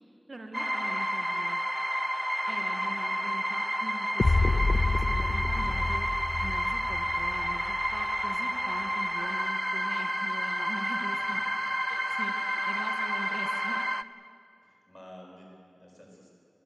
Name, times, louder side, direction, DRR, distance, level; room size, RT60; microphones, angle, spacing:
voice 1, 0.3-1.6 2.5-6.1 6.4-11.4 11.9-13.8, right 2 dB, 80° right, 4 dB, 1.7 m, -43 dB
sound 1, 0.5-14.0, equal, 5° right, 0.6 m, -30 dB
voice 2, 2.8-3.3 11.6-11.7 12.1-12.2 14.6-16.3, equal, 30° left, -1 dB, 7.2 m, -52 dB
sound 2, 4.2-8.2, left 3 dB, 85° left, 0.5 m, -28 dB
28.0 x 16.0 x 8.6 m, 2.5 s
wide cardioid pair, 40°, 0 cm